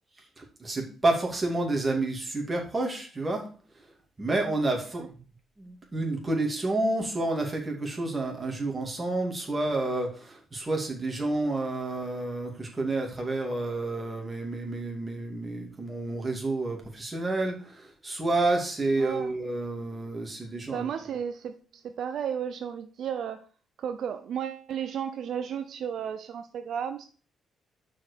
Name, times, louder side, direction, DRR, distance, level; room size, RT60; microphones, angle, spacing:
voice 1, 0.4-3.5 4.2-5.2 5.6-20.9, right 2 dB, 25° right, 2.8 m, -29 dB
voice 2, 19.0-19.3 20.7-23.5 23.8-27.1, right 8 dB, 65° right, 0.5 m, -33 dB
5.8 x 5.2 x 6.7 m
cardioid pair, 90°, 0 cm